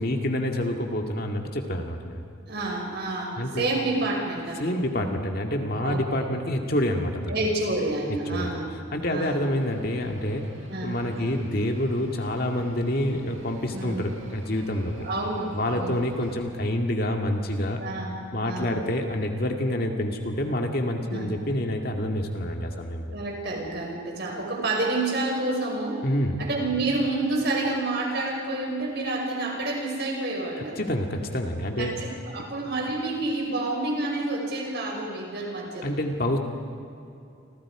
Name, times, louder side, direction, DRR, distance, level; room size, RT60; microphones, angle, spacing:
voice 1, 0.0-2.2 3.4-3.7 4.6-7.4 8.3-8.5 8.9-10.5 10.8-14.9 15.5-17.8 18.3-23.1 26.0-26.4 30.8-31.9 35.8-36.4, left 1 dB, 45° left, 3 dB, 2.2 m, -27 dB
voice 2, 2.5-5.0 5.8-6.3 7.3-8.8 9.1-9.4 10.7-11.4 13.7-14.0 15.0-16.1 17.8-18.9 21.1-21.3 23.1-26.0 26.4-30.8 31.8-35.9, right 2 dB, 50° right, 0 dB, 5.7 m, -29 dB
sound 1, 9.5-16.5, right 1 dB, 75° right, 5.7 m, -50 dB
30.0 x 26.0 x 5.0 m, 2.6 s
head